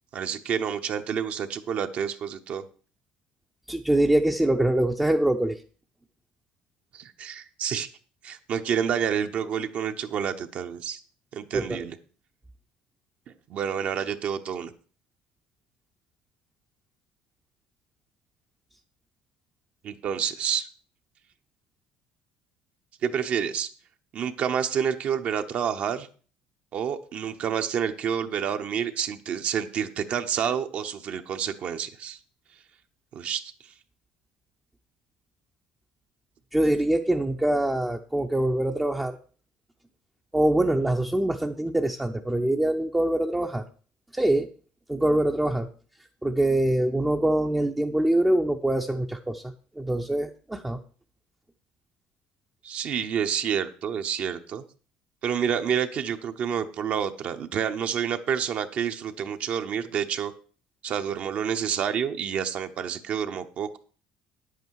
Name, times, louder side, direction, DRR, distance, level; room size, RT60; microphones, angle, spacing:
voice 1, 0.1-2.6 6.9-7.9 8.2-11.0 11.3-12.0 13.3-14.7 19.8-20.7 23.0-23.7 24.1-26.1 26.7-32.2 33.1-33.7 52.6-54.6 55.2-60.3 60.8-63.8, right 8 dB, 50° right, 7 dB, 0.8 m, -29 dB
voice 2, 3.7-5.6 11.5-11.9 36.5-39.2 40.3-43.6 44.1-44.5 44.9-45.7 46.2-50.8, right 1 dB, 5° right, 2 dB, 0.6 m, -24 dB
9.7 x 8.2 x 4.7 m, 0.40 s
cardioid pair, 135°, 3 cm